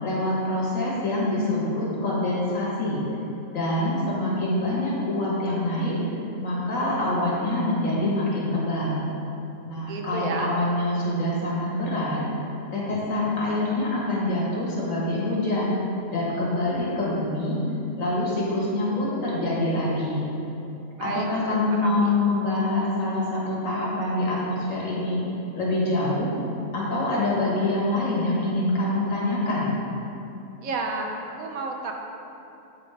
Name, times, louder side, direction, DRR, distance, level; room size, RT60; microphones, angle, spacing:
voice 1, 0.0-3.0 3.5-6.0 6.4-9.0 9.6-12.2 12.7-15.7 16.1-17.6 18.0-20.3 21.0-25.2 25.6-26.3 26.7-29.7, left 1 dB, 70° left, -5 dB, 1.8 m, -25 dB
voice 2, 9.8-10.5 21.0-22.2 30.6-31.1 31.4-31.9, right 4 dB, 85° right, 2 dB, 1.2 m, -31 dB
7.9 x 3.5 x 4.8 m, 2.8 s
omnidirectional pair, 1.4 m